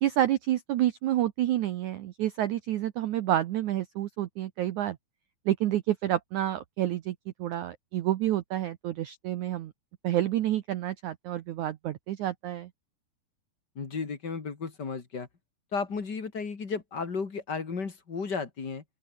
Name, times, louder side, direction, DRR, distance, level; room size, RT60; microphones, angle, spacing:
voice 1, 0.0-5.0 5.5-9.7 10.0-12.7, right 13 dB, 80° right, 1.7 m, -29 dB
voice 2, 13.8-15.3 15.7-18.8, left 5 dB, 30° left, 2.3 m, -34 dB
open air
omnidirectional pair, 4.7 m